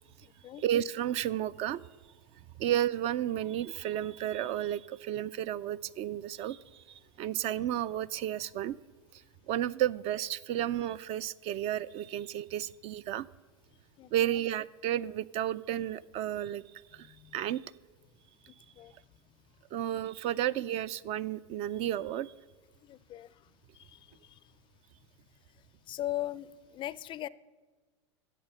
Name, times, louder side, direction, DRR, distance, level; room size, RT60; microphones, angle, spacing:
voice 1, 0.6-1.8 2.6-8.8 9.1-9.2 9.5-13.3 14.1-16.6 16.9-17.6 19.7-22.3, right 11 dB, 40° right, 17 dB, 0.4 m, -32 dB
voice 2, 17.0-17.3 18.8-18.9 22.8-23.3 23.7-24.4 25.9-27.3, left 14 dB, 30° left, 20 dB, 0.4 m, -39 dB
12.5 x 8.3 x 6.6 m, 1.3 s
hypercardioid pair, 95°, 16 cm